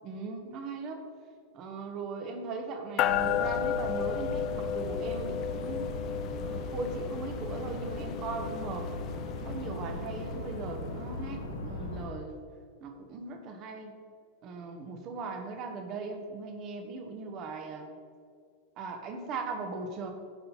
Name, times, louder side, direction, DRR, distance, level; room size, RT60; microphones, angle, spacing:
voice 1, 0.0-1.0 1.5-5.9 6.4-8.9 9.4-12.4 12.8-13.9 14.4-17.9 18.8-20.1, right 4 dB, 35° right, 5 dB, 1.3 m, -39 dB
sound 1, 3.0-12.1, left 2 dB, 75° left, 1.9 m, -38 dB
sound 2, 3.0-10.7, left 9 dB, 35° left, 0.4 m, -34 dB
15.0 x 5.7 x 4.2 m, 2.1 s
figure-of-eight pair, 90°, 0 cm